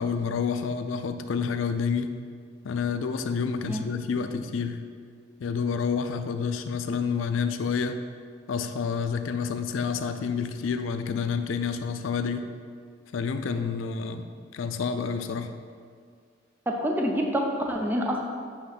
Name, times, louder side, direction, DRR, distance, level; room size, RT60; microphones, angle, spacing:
voice 1, 0.0-2.1 2.6-4.8 5.4-8.0 8.5-12.5 13.1-14.3 14.5-15.5, left 6 dB, 85° left, 8 dB, 0.4 m, -29 dB
voice 2, 16.7-18.2, equal, 10° right, 0 dB, 0.6 m, -27 dB
8.0 x 3.0 x 5.8 m, 2.1 s
head